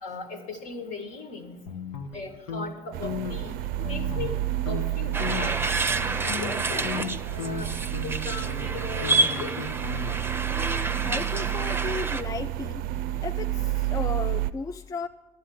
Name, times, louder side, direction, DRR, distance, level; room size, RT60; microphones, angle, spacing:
voice 1, 0.0-1.6 2.1-5.6 6.2-7.7 8.0-9.5, left 3 dB, 60° left, 1.7 m, -38 dB
sound 1, 1.7-2.7 3.0-3.4 3.8-4.4 4.7-4.9 5.2-5.6 6.0-10.4, left 6 dB, 75° left, 1.0 m, -36 dB
sound 2, 2.9-14.5, right 14 dB, 65° right, 0.4 m, -30 dB
sound 3, 5.1-12.2, right 3 dB, 15° right, 0.7 m, -29 dB
voice 2, 10.5-12.8 13.2-15.1, left 4 dB, 20° left, 0.4 m, -35 dB
11.5 x 8.4 x 6.3 m
hypercardioid pair, 60°, 16 cm